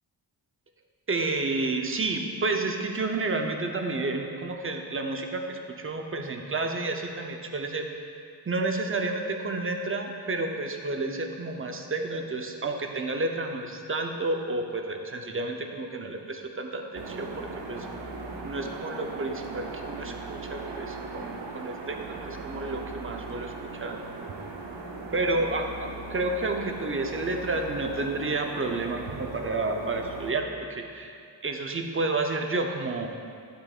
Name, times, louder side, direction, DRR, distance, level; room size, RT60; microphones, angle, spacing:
voice 1, 1.1-7.9 8.5-17.9 18.4-24.0 25.1-31.1 31.4-33.1, right 2 dB, 30° right, 3 dB, 0.7 m, -30 dB
sound 1, 16.9-30.3, right 3 dB, 80° right, 0.9 m, -39 dB
11.0 x 6.5 x 2.4 m, 2.3 s
cardioid pair, 75°, 44 cm